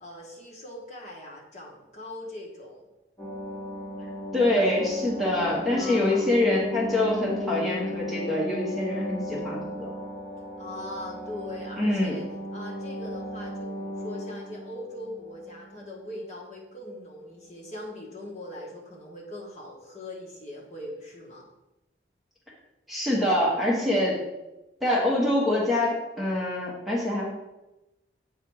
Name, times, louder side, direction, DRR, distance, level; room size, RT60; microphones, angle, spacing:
voice 1, 0.0-2.8 5.7-6.4 10.6-12.2 12.5-21.5, left 1 dB, 40° left, -3 dB, 1.4 m, -41 dB
sound 1, 3.2-16.2 16.5-16.6, left 1 dB, 15° left, 2.5 m, -36 dB
voice 2, 4.3-9.9 11.8-12.1 22.9-24.2 24.8-27.3, left 1 dB, ahead, -5 dB, 1.2 m, -25 dB
8.0 x 3.3 x 4.7 m, 1.0 s
head